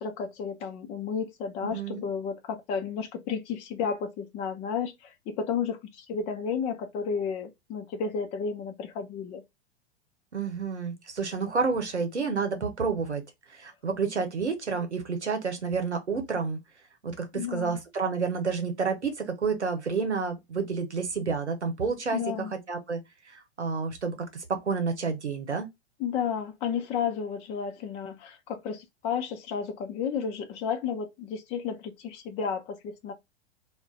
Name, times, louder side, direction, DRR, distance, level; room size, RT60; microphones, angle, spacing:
voice 1, 0.0-9.4 17.3-17.8 22.1-22.5 26.0-33.1, left 6 dB, 20° left, 0.4 m, -32 dB
voice 2, 1.7-2.0 10.3-13.2 13.5-16.6 17.0-23.0 23.3-25.7, right 5 dB, 85° right, 0.8 m, -30 dB
2.4 x 2.1 x 3.8 m
figure-of-eight pair, 95°, 34 cm